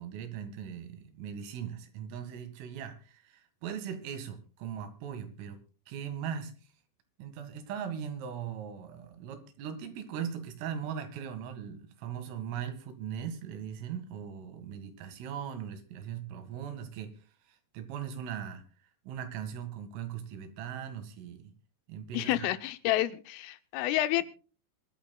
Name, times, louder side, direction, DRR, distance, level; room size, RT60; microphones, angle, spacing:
voice 1, 0.0-5.6 5.9-6.5 7.2-17.1 17.5-18.6 19.1-21.5 21.9-22.5, right 8 dB, 80° right, 8 dB, 4.5 m, -39 dB
voice 2, 22.1-24.2, left 15 dB, 80° left, 13 dB, 3.4 m, -29 dB
24.0 x 12.0 x 2.3 m, 0.37 s
omnidirectional pair, 5.8 m